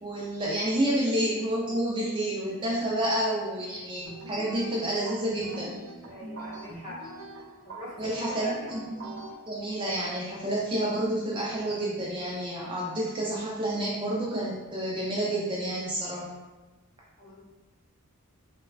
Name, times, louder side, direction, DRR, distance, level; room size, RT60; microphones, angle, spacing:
voice 1, 0.0-5.8 8.0-8.8 9.5-16.3, right 1 dB, 20° right, -5 dB, 0.4 m, -29 dB
voice 2, 2.9-3.3 6.1-7.0 7.6-8.7 17.2-17.4, left 1 dB, 35° left, -8 dB, 0.8 m, -43 dB
sound 1, 4.1-9.3, right 2 dB, 60° right, 0.7 m, -43 dB
3.2 x 2.2 x 2.3 m, 1.2 s
head